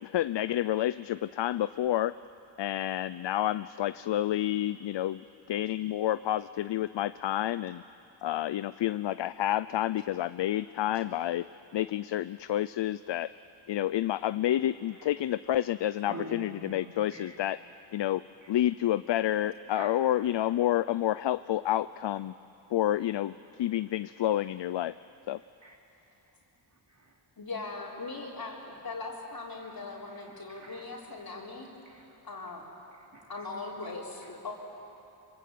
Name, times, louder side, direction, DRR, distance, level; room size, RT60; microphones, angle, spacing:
voice 1, 0.0-2.1 2.6-5.2 5.5-7.8 8.2-11.5 11.7-13.3 13.7-17.6 17.9-18.2 18.5-22.3 22.7-24.9 25.3-25.4, left 12 dB, 70° left, 15 dB, 0.5 m, -29 dB
voice 2, 16.1-16.7 17.1-17.4 18.4-18.5 19.8-20.0 25.6-25.8 26.7-27.2 29.6-29.7 30.1-30.9 31.9-32.2 33.0-33.5 33.8-33.9, right 2 dB, 35° right, -1 dB, 4.0 m, -47 dB
voice 3, 27.4-31.7 32.2-32.7 33.3-34.5, left 3 dB, 50° left, -3 dB, 3.8 m, -40 dB
26.5 x 25.5 x 8.4 m, 2.9 s
wide cardioid pair, 115°, 46 cm